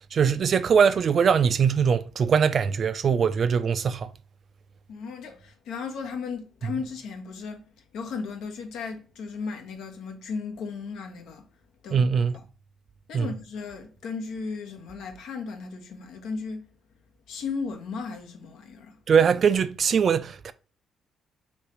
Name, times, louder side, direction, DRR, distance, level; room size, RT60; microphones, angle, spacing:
voice 1, 0.0-4.1 11.9-12.4 13.1-13.3 19.1-20.5, right 6 dB, 50° right, 0.3 m, -22 dB
voice 2, 4.9-7.6 7.9-11.5 11.8-12.1 13.1-16.6 17.3-19.0, left 5 dB, 85° left, 0.9 m, -35 dB
3.1 x 2.9 x 4.6 m
cardioid pair, 90°, 0 cm